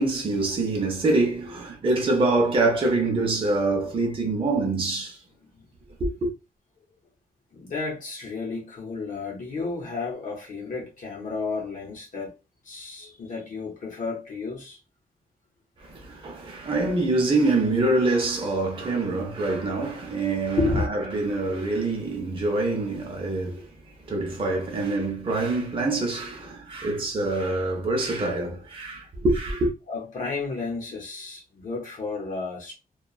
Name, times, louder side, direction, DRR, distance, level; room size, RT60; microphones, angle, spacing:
voice 1, 0.0-5.2 6.0-6.3 15.8-23.6 24.1-29.7, right 2 dB, 35° right, 0.7 m, -25 dB
voice 2, 7.5-12.3 12.6-14.8 20.6-21.0 29.9-32.7, left 4 dB, 60° left, 0.8 m, -32 dB
2.9 x 2.3 x 2.3 m
wide cardioid pair, 165°, 15 cm